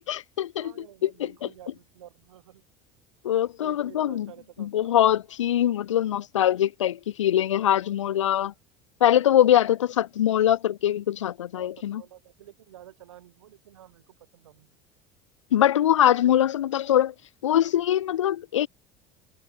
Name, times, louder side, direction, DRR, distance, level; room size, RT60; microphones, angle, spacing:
voice 1, 0.0-0.7 1.0-1.1 3.2-4.3 4.6-8.5 9.0-12.0 15.5-17.1 17.4-18.7, left 11 dB, 85° left, 0.7 m, -22 dB
voice 2, 0.6-2.6 3.6-4.9 11.5-14.7, right 12 dB, 80° right, 4.8 m, -50 dB
hypercardioid pair, 70°, 15 cm